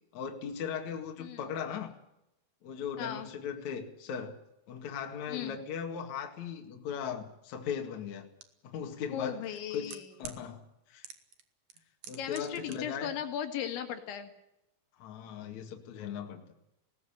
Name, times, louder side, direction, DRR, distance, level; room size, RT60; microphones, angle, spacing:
voice 1, 0.1-1.9 2.6-4.4 4.7-8.3 8.6-9.4 9.7-10.6 10.9-11.1 12.1-13.1 15.0-16.5, left 7 dB, 50° left, 3 dB, 2.6 m, -38 dB
voice 2, 3.0-3.3 5.3-5.6 9.1-10.1 12.2-14.3, left 9 dB, 70° left, 6 dB, 3.9 m, -37 dB
sound 1, 8.4-8.5 9.4-10.4 11.0-11.4 11.7-12.8 13.0-13.1, right 8 dB, 70° right, 1.7 m, -45 dB
20.5 x 18.0 x 8.7 m, 0.85 s
omnidirectional pair, 5.8 m